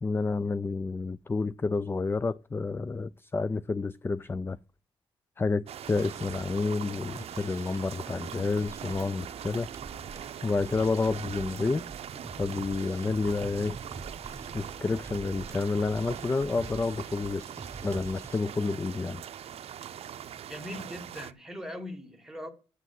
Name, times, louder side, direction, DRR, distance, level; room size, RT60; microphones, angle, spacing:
voice 1, 0.0-4.6 5.4-9.7 10.4-11.8 12.4-13.8 14.5-17.5 17.8-19.2, left 3 dB, 20° left, 0.4 m, -29 dB
sound 1, 5.7-21.3, right 9 dB, 70° right, 0.5 m, -42 dB
sound 2, 5.8-18.4, right 3 dB, 30° right, 1.2 m, -45 dB
sound 3, 9.8-19.0, left 3 dB, 75° left, 3.0 m, -64 dB
voice 2, 20.5-22.5, left 1 dB, 5° right, 2.1 m, -40 dB
8.1 x 5.9 x 7.4 m
cardioid pair, 75°, 11 cm